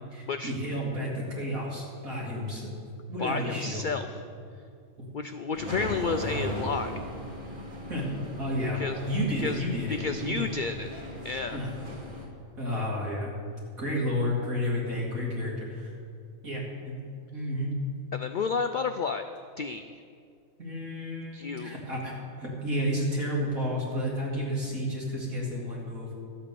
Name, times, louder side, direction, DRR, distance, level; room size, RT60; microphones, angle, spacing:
voice 1, 0.1-2.7 3.1-3.9 5.0-5.1 7.9-8.8 9.1-10.5 11.5-11.7 12.6-13.3 13.8-15.9 16.4-16.9 17.3-17.7 20.6-22.1 22.4-26.1, equal, 80° right, -4 dB, 3.3 m, -31 dB
voice 2, 3.2-4.1 5.1-7.0 8.7-9.0 9.4-9.6 9.9-11.0 11.2-11.6 18.1-19.2 19.6-19.9 21.3-21.8, left 5 dB, 80° left, 8 dB, 0.4 m, -31 dB
sound 1, 5.5-12.3, equal, 35° right, 2.0 m, -37 dB
12.5 x 8.8 x 6.9 m, 2.3 s
omnidirectional pair, 1.4 m